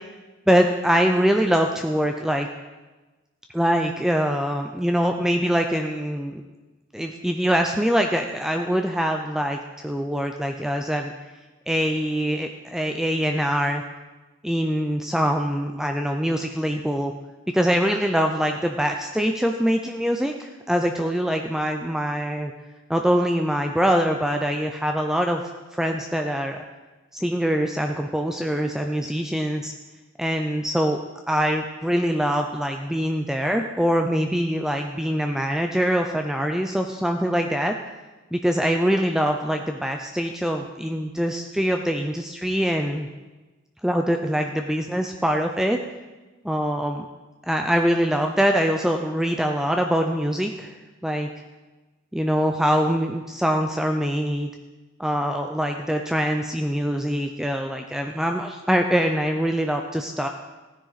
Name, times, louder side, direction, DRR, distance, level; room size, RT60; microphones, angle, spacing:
voice 1, 0.5-2.5 3.5-6.4 6.9-9.6 9.8-11.1 11.7-13.8 14.4-17.1 17.5-22.5 22.9-25.4 25.7-26.6 27.1-29.7 30.2-31.0 31.3-37.7 38.3-43.1 43.8-45.8 46.4-47.1 47.5-50.7 51.0-51.3 52.1-54.5 55.0-60.3, equal, ahead, 4 dB, 0.5 m, -23 dB
16.0 x 10.0 x 4.1 m, 1.2 s
head